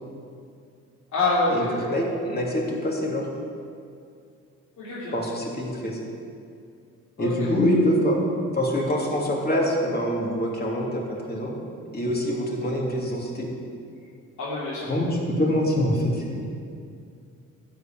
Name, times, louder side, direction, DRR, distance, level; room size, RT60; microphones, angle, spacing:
voice 1, 1.1-1.9 4.8-5.2 7.2-7.5 14.4-14.9, left 2 dB, 65° left, -9 dB, 3.1 m, -26 dB
voice 2, 1.9-3.3 5.1-6.0 7.2-8.2 8.5-11.5 11.9-13.5 14.9-16.2, equal, 30° left, -3 dB, 3.0 m, -25 dB
12.5 x 5.7 x 9.1 m, 2.4 s
cardioid pair, 90°, 30 cm